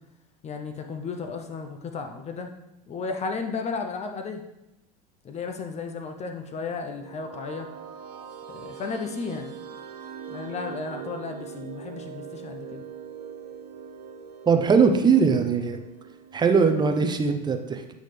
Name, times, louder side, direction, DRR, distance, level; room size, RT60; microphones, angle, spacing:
voice 1, 0.4-2.5 2.9-4.4 5.2-7.7 8.5-9.5 10.3-12.8, left 4 dB, 30° left, 5 dB, 0.6 m, -34 dB
sound 1, 6.6-17.4, right 7 dB, 80° right, 0.7 m, -42 dB
voice 2, 14.5-15.8 16.3-17.9, right 5 dB, 20° right, 6 dB, 0.7 m, -21 dB
8.2 x 3.9 x 3.3 m, 0.89 s
hypercardioid pair, 90°, 21 cm